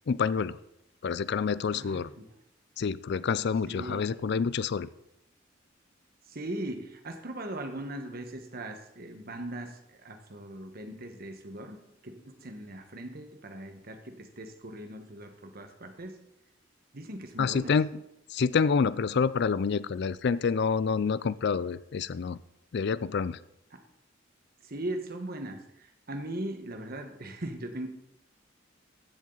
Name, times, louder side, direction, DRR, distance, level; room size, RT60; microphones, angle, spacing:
voice 1, 0.1-0.6 1.0-2.1 2.8-4.9 17.4-17.9 18.3-22.4 22.7-23.4, left 5 dB, 60° left, 17 dB, 0.4 m, -27 dB
voice 2, 1.7-2.0 3.7-4.1 6.3-11.8 12.0-16.2 16.9-17.7 23.7-23.8 24.6-27.9, right 1 dB, 50° right, 6 dB, 1.4 m, -39 dB
15.0 x 7.4 x 4.0 m, 0.81 s
head